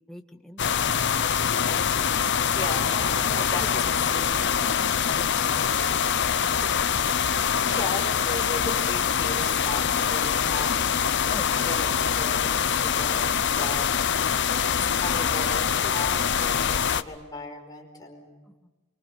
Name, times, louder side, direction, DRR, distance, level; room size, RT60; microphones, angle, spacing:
voice 1, 0.1-0.9 3.5-3.7 4.0-4.2 11.3-11.6 18.6-18.7, left 1 dB, ahead, 4 dB, 1.6 m, -43 dB
sound 1, 0.6-17.0, left 7 dB, 55° left, 0.8 m, -24 dB
voice 2, 2.6-4.3 6.4-6.7 7.7-11.0 11.2-14.5 14.8-18.3, left 2 dB, 20° left, 1 dB, 5.1 m, -37 dB
27.5 x 24.5 x 7.6 m, 1.2 s
head